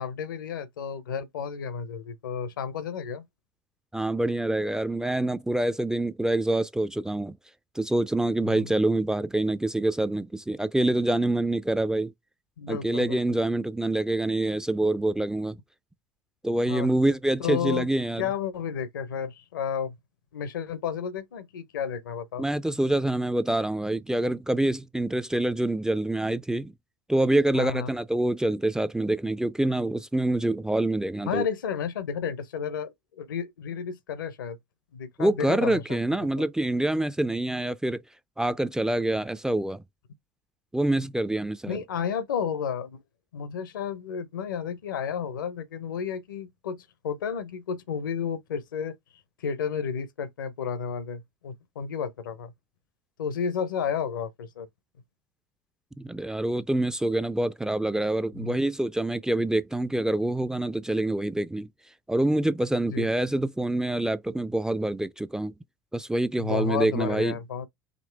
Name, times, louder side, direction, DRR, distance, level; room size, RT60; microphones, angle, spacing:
voice 1, 0.0-3.3 8.4-8.7 12.6-13.2 16.6-16.9 17.4-17.9 18.2-19.9 20.3-22.4 27.5-27.9 31.3-34.6 34.9-36.0 36.4-36.5 41.7-43.0 43.3-49.0 49.4-52.5 53.2-54.7 58.4-58.6 62.9-63.1 66.4-67.7, left 7 dB, 80° left, 0.7 m, -32 dB
voice 2, 3.9-7.4 7.8-12.1 12.7-15.6 16.4-18.3 22.4-26.7 27.1-31.5 35.2-38.0 38.4-39.8 40.7-41.8 56.0-61.7 62.1-65.5 65.9-67.3, right 1 dB, 5° right, 0.4 m, -26 dB
5.2 x 3.0 x 3.3 m
hypercardioid pair, 75°, 11 cm